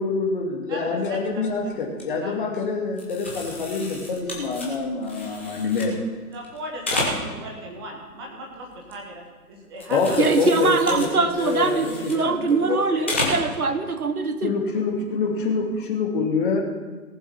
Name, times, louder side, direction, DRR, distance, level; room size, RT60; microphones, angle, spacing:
voice 1, 0.0-6.0 9.9-13.3 14.4-16.6, left 4 dB, 35° left, 0 dB, 2.2 m, -26 dB
sound 1, 1.0-1.3 1.7-2.0 3.0-5.9 6.3-7.6 8.0-9.4 9.7-12.7 13.0-13.5 13.9-14.0 15.6-15.8, left 2 dB, 10° left, 0.6 m, -32 dB
voice 2, 6.3-9.2 9.5-10.1, equal, 15° right, 0 dB, 1.2 m, -36 dB
voice 3, 10.2-14.5, right 4 dB, 70° right, 9 dB, 1.3 m, -22 dB
18.0 x 7.1 x 5.6 m, 1.4 s
figure-of-eight pair, 140°, 46 cm